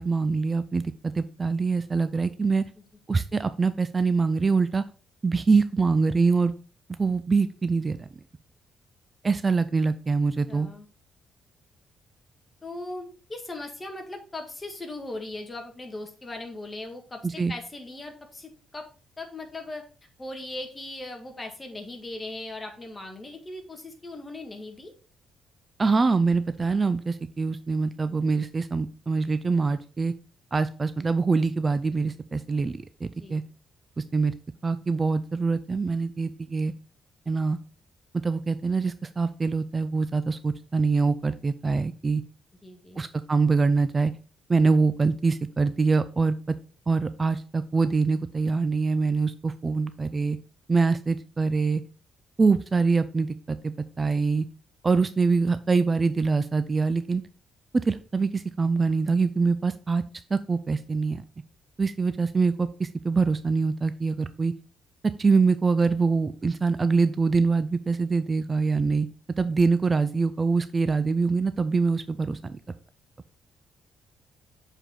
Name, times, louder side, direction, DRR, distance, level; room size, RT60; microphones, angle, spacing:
voice 1, 0.0-2.6 3.1-4.8 5.2-6.5 7.0-8.1 9.2-10.7 17.2-17.5 25.8-30.1 30.5-33.4 34.0-34.3 34.6-36.7 37.3-37.6 38.2-42.2 43.0-44.1 44.5-46.4 46.9-50.4 50.7-51.8 52.4-54.5 54.8-57.2 57.7-60.0 60.3-61.2 61.8-64.5 65.2-69.1 69.4-72.6, right 4 dB, 30° right, 12 dB, 0.4 m, -24 dB
voice 2, 10.5-10.9 12.6-18.8 19.2-19.8 20.2-24.9 33.2-33.4 42.6-43.0, left 2 dB, 20° left, 4 dB, 1.7 m, -38 dB
6.9 x 4.5 x 3.7 m, 0.37 s
cardioid pair, 90°, 0 cm